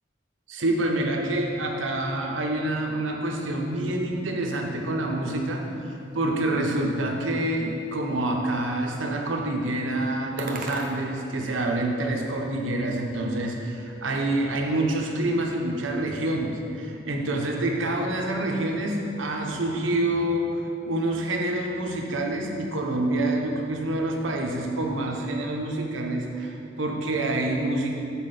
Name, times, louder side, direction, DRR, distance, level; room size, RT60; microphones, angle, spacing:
voice 1, 0.5-20.6 20.9-27.9, right 1 dB, 85° right, 1 dB, 0.9 m, -27 dB
sound 1, 4.7-12.0, right 2 dB, 45° right, 0.8 m, -44 dB
7.2 x 4.3 x 5.8 m, 2.7 s
head